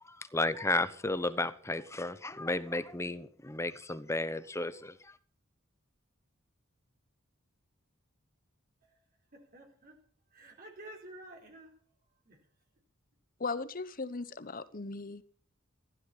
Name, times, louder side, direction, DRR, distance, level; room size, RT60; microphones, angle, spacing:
voice 1, 0.1-5.1, left 2 dB, 15° left, 13 dB, 1.0 m, -33 dB
voice 2, 9.3-10.0 10.3-11.7 12.2-12.4, right 1 dB, 45° right, 1 dB, 4.1 m, -51 dB
voice 3, 13.4-15.2, left 3 dB, 45° left, 15 dB, 1.0 m, -37 dB
15.5 x 13.0 x 5.8 m, 0.44 s
head